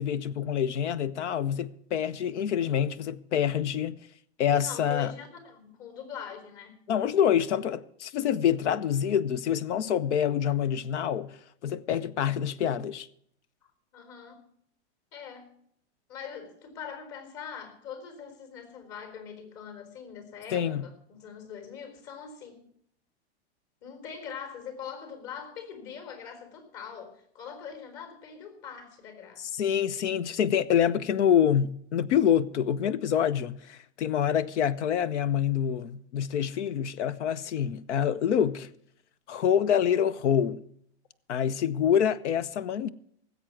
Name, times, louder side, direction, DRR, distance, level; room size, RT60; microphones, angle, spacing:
voice 1, 0.0-4.0 4.4-5.1 6.9-13.1 20.5-20.9 29.4-38.7 39.3-40.6 41.3-42.9, left 9 dB, 85° left, 0.8 m, -26 dB
voice 2, 4.6-6.8 13.9-14.4 15.1-15.5 16.1-22.7 23.8-29.5, left 7 dB, 50° left, 4.2 m, -42 dB
18.5 x 8.1 x 5.9 m
supercardioid pair, 135°, 34 cm